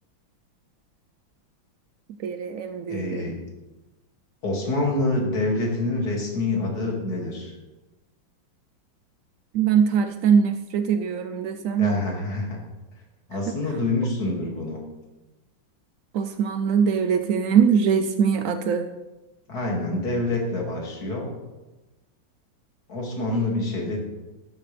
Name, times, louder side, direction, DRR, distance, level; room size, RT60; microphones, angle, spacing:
voice 1, 2.2-3.2 9.5-11.9 16.1-18.9, right 7 dB, 80° right, 7 dB, 0.7 m, -22 dB
voice 2, 2.9-3.4 4.4-7.5 11.8-12.6 13.3-14.8 19.5-21.3 22.9-24.0, left 2 dB, 50° left, -1 dB, 3.0 m, -26 dB
13.0 x 13.0 x 3.4 m, 1.1 s
omnidirectional pair, 2.2 m